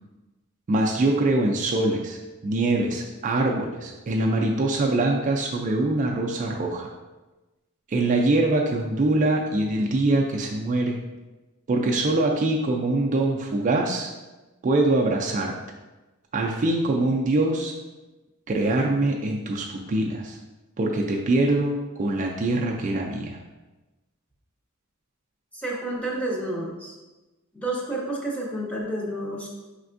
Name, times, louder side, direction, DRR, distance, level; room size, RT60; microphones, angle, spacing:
voice 1, 0.7-2.2 2.4-6.9 7.9-11.0 11.7-14.1 14.6-15.5 16.3-17.7 18.5-20.4 20.8-23.4, right 2 dB, 35° right, 0 dB, 0.3 m, -23 dB
voice 2, 25.5-26.9 27.5-29.5, right 1 dB, 5° left, -3 dB, 0.6 m, -30 dB
5.0 x 3.3 x 2.5 m, 1.1 s
head